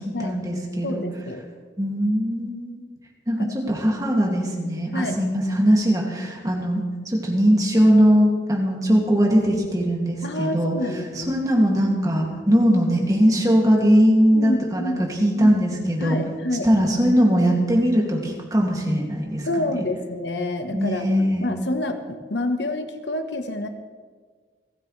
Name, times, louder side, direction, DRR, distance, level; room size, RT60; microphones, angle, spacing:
voice 1, 0.0-1.0 1.8-2.8 3.3-10.7 11.2-16.2 16.6-19.8 20.7-21.5, equal, 20° right, -1 dB, 2.4 m, -20 dB
voice 2, 0.8-1.4 3.5-3.6 4.9-5.2 10.2-11.4 14.3-15.0 15.3-15.6 16.0-16.7 19.5-23.7, left 1 dB, 85° left, 7 dB, 1.2 m, -28 dB
29.5 x 9.9 x 3.3 m, 1.5 s
head